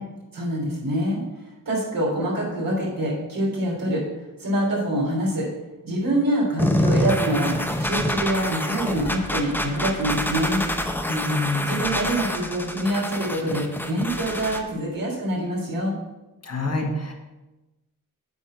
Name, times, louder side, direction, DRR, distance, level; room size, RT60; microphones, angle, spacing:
voice 1, 0.3-1.2 1.6-4.0 4.4-5.5 5.8-7.5 7.8-10.6 11.6-15.9, right 1 dB, 80° right, -4 dB, 3.1 m, -25 dB
sound 1, 6.6-14.6, left 1 dB, 5° left, 0.8 m, -26 dB
voice 2, 11.1-11.8 16.4-17.1, left 2 dB, 50° left, 2 dB, 1.4 m, -26 dB
8.3 x 4.1 x 5.8 m, 1.0 s
wide cardioid pair, 85°, 34 cm